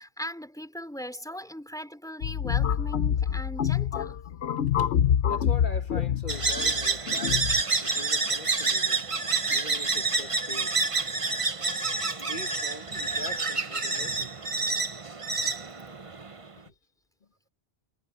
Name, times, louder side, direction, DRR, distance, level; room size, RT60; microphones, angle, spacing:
voice 1, 0.0-4.2, equal, 5° left, 3.7 m, -39 dB
sound 1, 2.2-7.6, left 9 dB, 90° left, 1.0 m, -26 dB
voice 2, 5.3-7.5 7.8-9.0 9.5-10.8 12.2-14.3 16.6-16.7, left 3 dB, 50° left, 2.0 m, -42 dB
sound 2, 6.3-16.5, right 4 dB, 30° right, 1.1 m, -28 dB
omnidirectional pair, 1.1 m